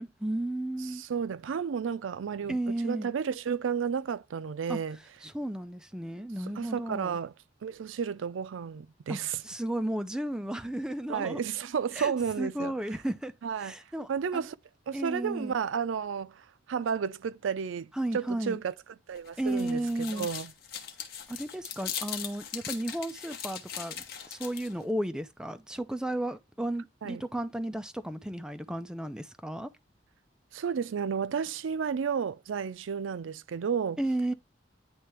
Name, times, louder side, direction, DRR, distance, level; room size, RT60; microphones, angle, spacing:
voice 1, 0.0-1.0 2.5-3.1 4.7-4.8 5.2-7.2 9.1-9.2 9.4-11.4 11.9-13.3 13.6-14.5 14.9-15.6 17.9-18.6 19.4-20.3 21.3-29.7 34.0-34.3, right 1 dB, 5° right, 0.5 m, -33 dB
voice 2, 0.9-5.0 6.6-7.3 7.6-9.4 11.1-12.7 13.4-13.7 14.1-14.6 14.9-18.7 19.1-20.5 27.0-27.2 30.5-34.0, right 7 dB, 85° right, 0.4 m, -32 dB
sound 1, 19.1-24.8, left 8 dB, 55° left, 1.1 m, -40 dB
9.6 x 3.3 x 3.1 m
head